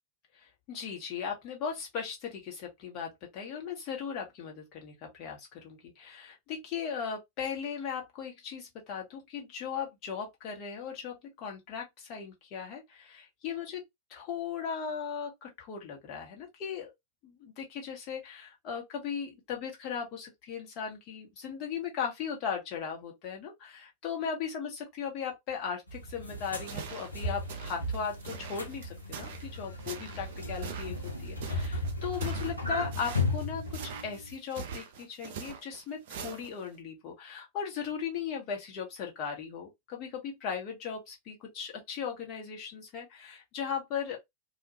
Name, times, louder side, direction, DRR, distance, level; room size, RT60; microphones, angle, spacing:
voice 1, 0.7-13.8 14.1-16.9 17.2-44.2, left 7 dB, 40° left, 1.0 m, -38 dB
sound 1, 25.9-34.3, left 2 dB, 85° left, 0.6 m, -35 dB
sound 2, 26.4-36.8, right 6 dB, 55° right, 0.5 m, -44 dB
2.3 x 2.2 x 2.9 m
figure-of-eight pair, 90°, 0 cm